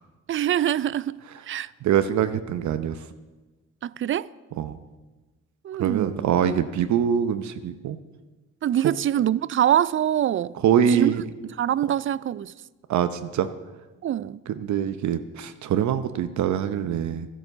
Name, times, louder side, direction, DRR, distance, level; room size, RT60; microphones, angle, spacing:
voice 1, 0.3-1.2 1.5-1.7 3.8-4.3 5.6-6.3 8.6-10.6 10.9-11.1 11.4-12.5 14.0-14.4, right 11 dB, 45° right, 0.4 m, -24 dB
voice 2, 1.8-3.0 4.6-4.8 5.8-8.0 10.6-11.2 12.9-13.5 14.6-17.3, right 9 dB, 70° right, 0.8 m, -24 dB
12.5 x 11.0 x 6.7 m
cardioid pair, 90°, 30 cm